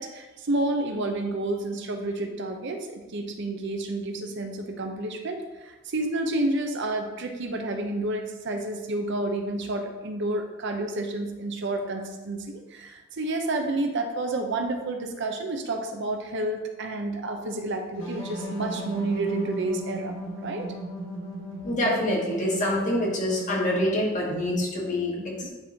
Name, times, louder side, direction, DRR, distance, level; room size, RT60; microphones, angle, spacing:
voice 1, 0.0-20.7 25.2-25.5, right 2 dB, 65° right, 4 dB, 0.7 m, -30 dB
sound 1, 18.0-23.6, equal, 80° left, 1.3 m, -37 dB
voice 2, 21.6-25.3, left 1 dB, 40° left, -3 dB, 1.6 m, -26 dB
10.0 x 3.6 x 2.8 m, 1.1 s
head